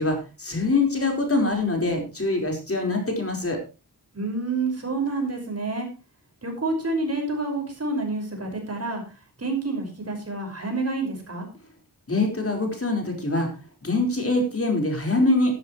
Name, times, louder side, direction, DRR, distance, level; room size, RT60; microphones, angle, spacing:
voice 1, 0.0-3.6 12.1-13.5 13.8-15.5, left 2 dB, 35° left, 3 dB, 4.6 m, -24 dB
voice 2, 4.1-5.9 6.4-9.0 9.4-11.5, right 3 dB, 40° right, 3 dB, 5.7 m, -28 dB
14.5 x 12.0 x 3.2 m, 0.31 s
wide cardioid pair, 80°, 39 cm